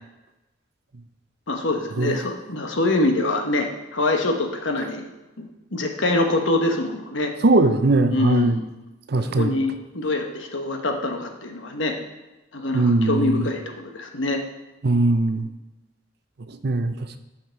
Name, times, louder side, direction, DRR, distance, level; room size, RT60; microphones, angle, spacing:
voice 1, 1.5-5.1 5.4-7.3 8.1-8.7 9.1-12.0 12.5-14.4, left 2 dB, 80° left, 4 dB, 1.2 m, -25 dB
voice 2, 7.4-8.6 9.1-9.6 12.7-13.5 14.8-15.5 16.5-17.2, right 2 dB, 55° right, 9 dB, 0.6 m, -20 dB
10.5 x 5.8 x 4.5 m, 1.0 s
head